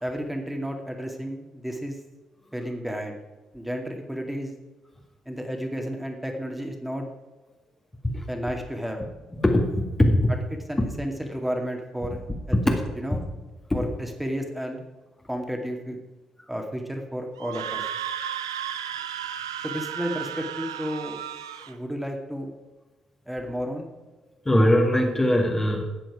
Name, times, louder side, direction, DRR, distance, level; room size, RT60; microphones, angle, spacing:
voice 1, 0.0-2.0 2.5-3.2 3.5-4.5 5.3-7.0 8.3-9.0 10.7-13.2 13.7-14.9 15.3-16.0 16.5-17.8 19.6-21.2 21.7-22.5 23.3-23.9, equal, 5° right, 3 dB, 2.2 m, -32 dB
voice 2, 9.3-10.3 12.5-12.6 13.1-13.2 13.7-13.8 24.5-25.8, left 1 dB, 15° left, 1 dB, 1.9 m, -21 dB
Screaming, 17.4-21.7, right 9 dB, 85° right, 0.5 m, -33 dB
13.0 x 8.9 x 4.9 m, 1.1 s
figure-of-eight pair, 45°, 2 cm